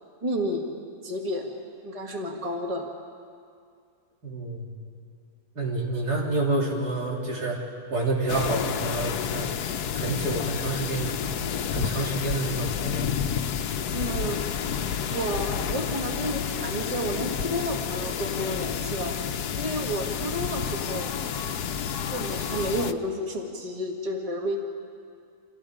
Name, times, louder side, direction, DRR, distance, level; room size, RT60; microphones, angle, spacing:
voice 1, 0.2-0.6 1.0-1.5 1.8-2.9 13.9-14.4 15.1-19.1 19.6-21.1 22.1-24.6, equal, 20° right, 0 dB, 2.2 m, -31 dB
voice 2, 4.2-4.6 5.6-7.6 7.9-9.5 9.9-11.1 11.7-13.1, right 2 dB, 80° right, -3 dB, 4.2 m, -28 dB
sound 1, 8.3-22.9, left 8 dB, 80° left, 1.3 m, -30 dB
29.5 x 27.0 x 5.1 m, 2.3 s
omnidirectional pair, 1.7 m